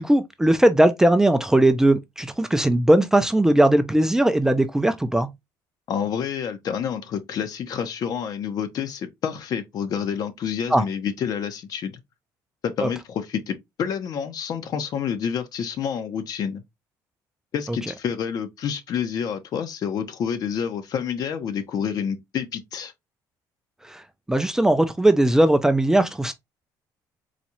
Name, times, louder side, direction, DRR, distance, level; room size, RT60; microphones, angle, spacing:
voice 1, 0.0-5.3 10.7-10.8 12.8-12.9 23.9-24.0 24.3-26.3, right 1 dB, 5° right, 0.4 m, -19 dB
voice 2, 5.9-12.0 12.6-16.6 17.5-22.9, left 7 dB, 55° left, 0.7 m, -28 dB
4.0 x 2.3 x 2.9 m
cardioid pair, 125°, 7 cm